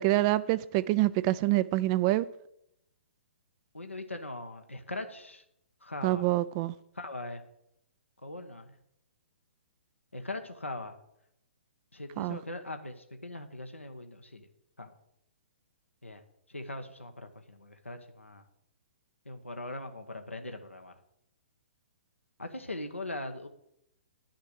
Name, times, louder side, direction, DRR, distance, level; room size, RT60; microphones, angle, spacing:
voice 1, 0.0-2.3 6.0-6.7 12.2-12.4, right 17 dB, 30° right, 0.3 m, -26 dB
voice 2, 3.7-5.4 5.8-6.3 6.9-7.4 8.2-8.8 10.1-10.9 11.9-14.5 14.8-14.9 16.0-16.2 16.5-18.4 19.2-20.9 22.4-23.5, left 2 dB, 90° left, 1.1 m, -40 dB
9.9 x 6.6 x 7.6 m
figure-of-eight pair, 125°, 7 cm